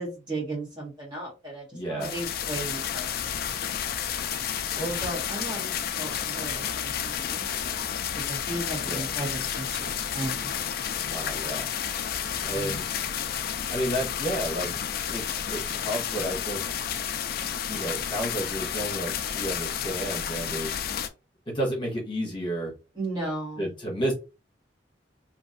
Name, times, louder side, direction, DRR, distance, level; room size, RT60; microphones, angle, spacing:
voice 1, 0.0-3.6 5.0-7.8 8.1-10.5 12.5-12.8 22.9-23.7, right 2 dB, 25° right, -3 dB, 1.6 m, -36 dB
voice 2, 1.7-2.1 4.8-5.0 8.8-9.1 11.1-11.7 12.4-12.9 13.7-14.7 15.1-16.7 17.7-20.8 21.5-22.7 23.6-24.1, right 1 dB, 25° left, -2 dB, 1.1 m, -31 dB
sound 1, 2.0-21.1, left 8 dB, 55° left, 0.4 m, -31 dB
3.0 x 2.6 x 2.6 m, 0.28 s
head